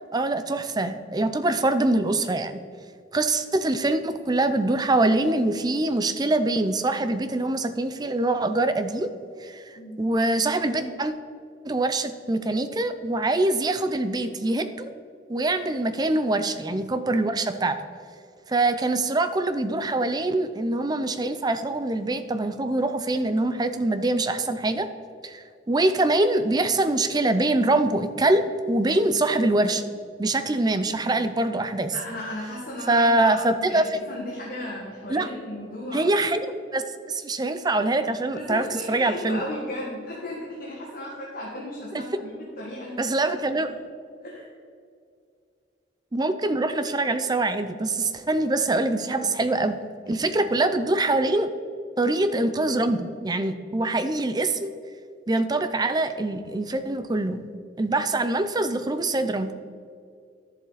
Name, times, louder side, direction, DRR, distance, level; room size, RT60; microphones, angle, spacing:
voice 1, 0.1-2.6 3.1-9.1 9.4-9.6 10.0-11.1 11.6-14.9 15.3-17.8 18.5-24.9 25.2-29.8 30.2-31.9 32.9-34.0 35.1-35.3 35.9-36.4 36.7-39.4 43.0-43.7 46.1-49.8 50.1-51.5 52.0-54.7 55.3-57.4 57.8-59.5, right 2 dB, 20° right, 10 dB, 0.5 m, -24 dB
voice 2, 31.9-36.1 38.3-43.1 43.5-43.7 44.2-44.5, left 1 dB, 50° left, -5 dB, 1.7 m, -35 dB
11.0 x 7.2 x 4.0 m, 2.3 s
head